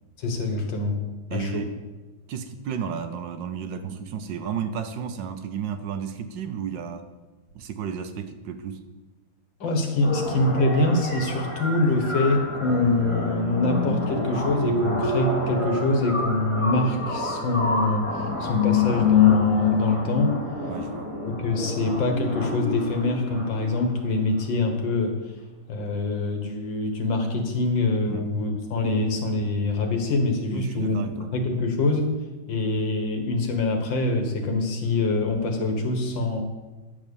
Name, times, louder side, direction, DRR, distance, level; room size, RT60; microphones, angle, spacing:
voice 1, 0.2-1.0 1.3-1.7 9.6-20.4 21.3-25.2 25.7-31.0 31.3-32.1 32.5-36.4, left 2 dB, 70° left, 4 dB, 2.1 m, -24 dB
voice 2, 1.3-1.8 2.3-7.1 7.5-8.9 20.7-21.1 28.1-28.3 30.5-31.3, right 7 dB, 70° right, 9 dB, 1.4 m, -33 dB
sound 1, 10.0-24.0, left 4 dB, 15° left, 1.5 m, -27 dB
10.5 x 6.4 x 6.9 m, 1.2 s
omnidirectional pair, 2.1 m